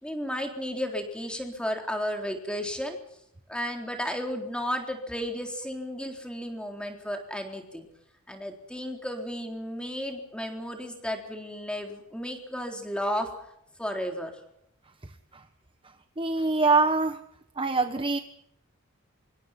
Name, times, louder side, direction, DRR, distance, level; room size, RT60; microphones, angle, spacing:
voice 1, 0.0-3.0 3.5-7.8 8.3-13.3 13.8-14.3, equal, 5° left, 4 dB, 3.9 m, -33 dB
voice 2, 16.2-17.2 17.6-18.2, right 3 dB, 25° right, 9 dB, 1.1 m, -24 dB
26.0 x 22.5 x 5.9 m, 0.78 s
head